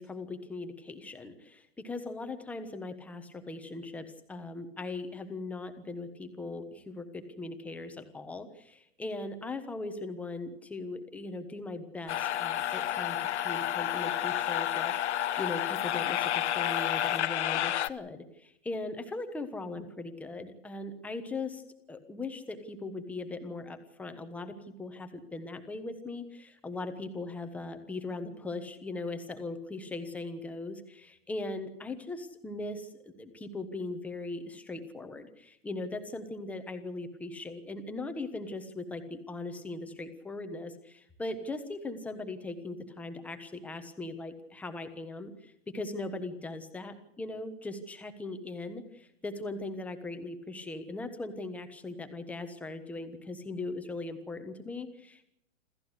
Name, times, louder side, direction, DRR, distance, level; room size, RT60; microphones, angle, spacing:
voice 1, 0.0-21.6 21.9-55.3, left 2 dB, 5° left, 8 dB, 1.3 m, -39 dB
sound 1, 12.1-17.9, left 11 dB, 65° left, 1.1 m, -30 dB
27.5 x 14.0 x 8.2 m, 0.77 s
hypercardioid pair, 170°, 37 cm